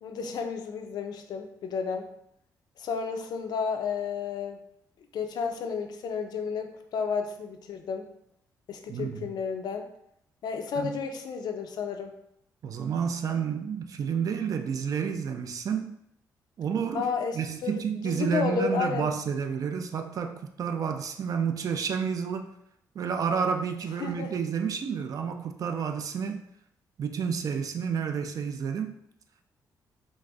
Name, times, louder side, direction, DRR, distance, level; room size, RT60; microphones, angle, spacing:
voice 1, 0.0-2.1 2.8-4.6 5.1-8.1 8.7-9.9 10.4-12.1 16.9-19.1 24.0-24.3, left 5 dB, 70° left, 0.4 m, -32 dB
voice 2, 8.9-9.3 10.8-10.9 12.6-16.0 16.6-22.5 23.0-26.4 27.0-28.9, right 6 dB, 55° right, 0.3 m, -30 dB
4.0 x 2.5 x 2.3 m
cardioid pair, 100°, 7 cm